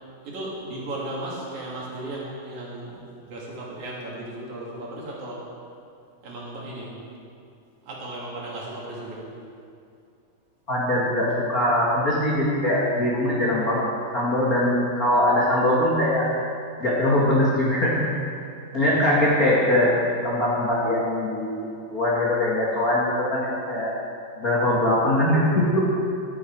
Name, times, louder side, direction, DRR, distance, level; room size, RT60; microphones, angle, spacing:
voice 1, 0.2-5.4 6.2-6.9 7.8-9.2 18.8-19.2, right 1 dB, 55° right, -5 dB, 3.2 m, -35 dB
voice 2, 10.7-13.8 14.1-16.3 16.8-18.0 18.7-19.9 20.2-23.9 24.4-26.0, left 1 dB, 60° left, -6 dB, 0.9 m, -22 dB
12.5 x 10.5 x 4.5 m, 2.5 s
omnidirectional pair, 4.4 m